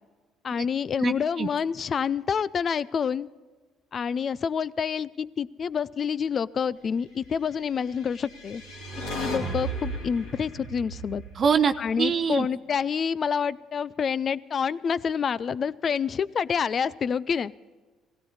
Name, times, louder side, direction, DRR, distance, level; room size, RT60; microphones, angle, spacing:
voice 1, 0.4-3.3 3.9-8.6 9.0-11.2 11.8-17.5, left 7 dB, 45° left, 19 dB, 0.5 m, -28 dB
voice 2, 1.0-1.5 11.3-12.5, right 6 dB, 45° right, 8 dB, 0.7 m, -25 dB
sound 1, 8.0-12.3, right 2 dB, 85° left, 3.5 m, -35 dB
17.5 x 16.0 x 4.1 m, 1.3 s
hypercardioid pair, 55°, 0 cm